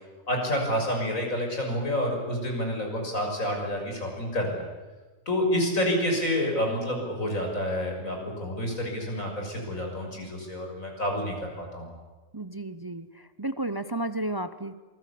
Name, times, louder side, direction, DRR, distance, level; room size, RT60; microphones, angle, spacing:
voice 1, 0.3-4.6 5.3-11.9, equal, 90° left, 1 dB, 6.8 m, -28 dB
voice 2, 12.3-13.1 13.4-14.7, right 1 dB, 20° right, 12 dB, 0.8 m, -32 dB
27.0 x 21.0 x 8.6 m, 1.2 s
omnidirectional pair, 1.4 m